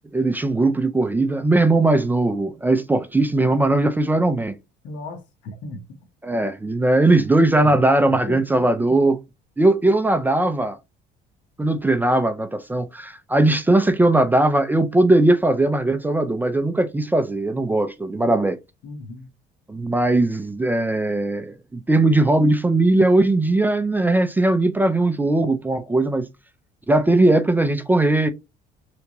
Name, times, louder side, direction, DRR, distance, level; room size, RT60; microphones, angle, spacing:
voice 1, 0.1-4.6 6.2-9.2 9.6-10.8 11.6-18.6 19.7-26.3 26.9-28.3, right 2 dB, 10° right, 0.3 m, -19 dB
voice 2, 4.8-5.8 7.6-7.9 8.3-8.4 18.8-19.3, left 2 dB, 80° left, 1.1 m, -35 dB
3.4 x 2.8 x 2.9 m
cardioid pair, 145°, 19 cm